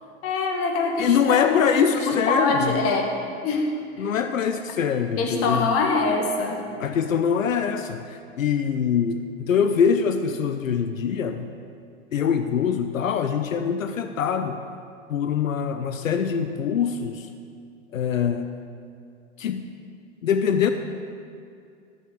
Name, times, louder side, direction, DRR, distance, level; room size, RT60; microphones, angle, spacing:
voice 1, 0.2-1.7 2.0-3.1 3.4-3.7 5.2-6.6, left 3 dB, 35° left, 2 dB, 1.4 m, -24 dB
voice 2, 1.0-2.8 4.0-5.7 6.8-11.5 12.1-14.6 15.1-17.3 17.9-18.5 19.4-19.7 20.2-20.7, left 7 dB, 85° left, 8 dB, 0.6 m, -23 dB
12.5 x 7.8 x 3.8 m, 2.4 s
hypercardioid pair, 100°, 39 cm